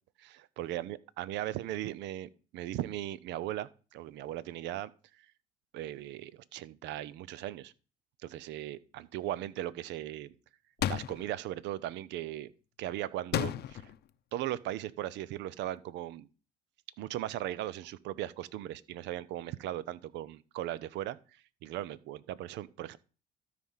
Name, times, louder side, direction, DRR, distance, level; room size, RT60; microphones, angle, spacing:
voice 1, 0.2-4.9 5.7-7.7 8.2-10.3 10.9-12.5 12.8-13.8 14.3-16.3 17.0-21.2 21.6-23.0, right 13 dB, 70° right, 0.7 m, -38 dB
sound 1, 10.8-11.3 13.3-14.0, left 11 dB, 55° left, 0.7 m, -32 dB
12.5 x 5.1 x 5.6 m
hypercardioid pair, 65°, 19 cm